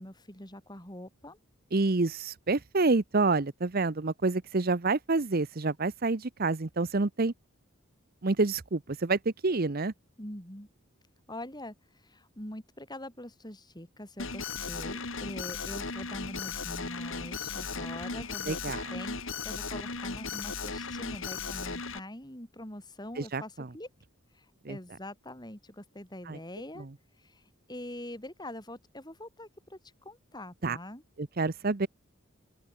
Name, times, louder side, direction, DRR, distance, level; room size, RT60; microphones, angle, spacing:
voice 1, 0.0-1.4 10.2-10.7 11.3-23.9 24.3-26.9 27.2-29.8 30.1-31.0, left 1 dB, 20° left, 7.0 m, -44 dB
voice 2, 1.7-7.3 8.2-9.9 18.5-18.8 23.2-23.7 24.7-24.8 26.3-26.4 30.6-30.8 31.2-31.9, right 3 dB, 45° right, 0.8 m, -28 dB
Alarm, 14.2-22.0, left 4 dB, 65° left, 4.3 m, -36 dB
open air
head